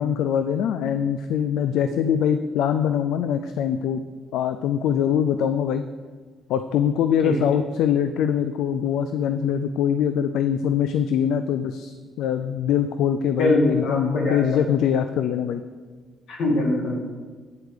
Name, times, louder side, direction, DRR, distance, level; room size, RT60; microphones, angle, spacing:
voice 1, 0.0-4.0 4.3-5.8 6.5-15.6, left 8 dB, 85° left, 9 dB, 0.3 m, -23 dB
voice 2, 13.4-14.4 16.3-17.0, left 1 dB, 70° left, -1 dB, 2.0 m, -22 dB
8.8 x 4.6 x 6.6 m, 1.5 s
cardioid pair, 90°, 0 cm